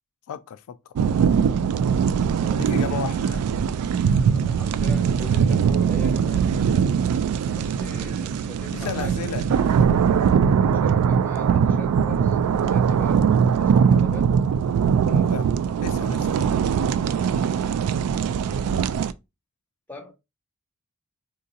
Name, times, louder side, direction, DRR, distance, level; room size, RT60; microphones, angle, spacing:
voice 1, 0.3-1.0 2.6-3.4 8.7-10.0 15.1-15.5 15.8-16.5, left 8 dB, 85° left, 0.3 m, -34 dB
sound 1, 1.0-19.1, right 7 dB, 85° right, 0.3 m, -21 dB
voice 2, 2.3-3.1 4.3-6.9 7.6-9.1 10.6-14.4 17.0-17.6 18.2-18.5 19.9-20.1, equal, 10° left, 0.8 m, -42 dB
3.8 x 2.5 x 2.6 m
head